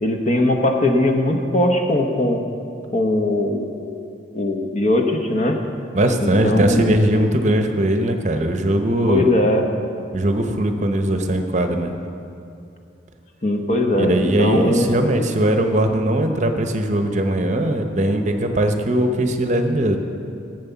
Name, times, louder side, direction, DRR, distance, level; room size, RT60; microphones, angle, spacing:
voice 1, 0.0-2.4 2.9-4.0 4.3-5.6 6.2-6.9 9.1-9.7 13.4-14.9, left 1 dB, 35° left, 3 dB, 0.9 m, -20 dB
voice 2, 5.9-9.3 10.1-12.0 14.0-20.0, right 1 dB, 40° right, 6 dB, 0.8 m, -20 dB
11.0 x 7.9 x 6.9 m, 2.6 s
head